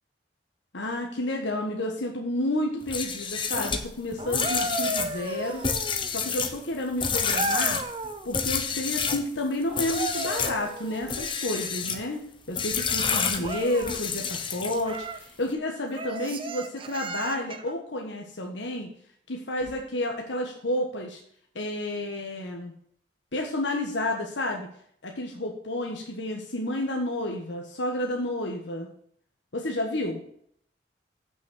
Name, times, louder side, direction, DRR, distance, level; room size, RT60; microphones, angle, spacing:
voice 1, 0.7-5.6 6.1-7.8 8.2-18.9 19.3-21.2 21.5-22.7 23.3-24.7 25.0-28.9 29.5-30.2, left 1 dB, 80° left, 1 dB, 1.4 m, -30 dB
sound 1, 2.8-9.3 9.7-10.6 11.0-12.0 12.5-15.0, left 6 dB, 25° left, 0.9 m, -29 dB
sound 2, 4.2-6.2 7.3-8.3 9.7-11.3 13.4-14.0 14.8-15.3 15.9-17.7 19.6-19.8, right 2 dB, 30° right, 0.7 m, -34 dB
8.4 x 6.3 x 6.3 m, 0.64 s
head